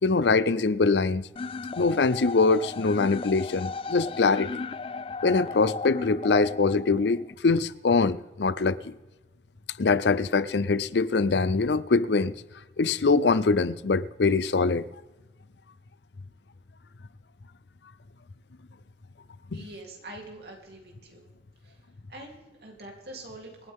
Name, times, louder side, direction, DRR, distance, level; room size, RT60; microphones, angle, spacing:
voice 1, 0.0-1.3 1.8-4.5 5.2-8.9 9.8-12.3 12.8-14.8 19.5-19.6, left 4 dB, 80° left, 0.6 m, -23 dB
sound 1, 1.4-7.3, left 4 dB, 30° left, 0.3 m, -36 dB
voice 2, 19.5-21.3 21.6-21.8 22.1-23.7, right 1 dB, 65° right, 3.3 m, -44 dB
26.0 x 9.6 x 3.7 m
head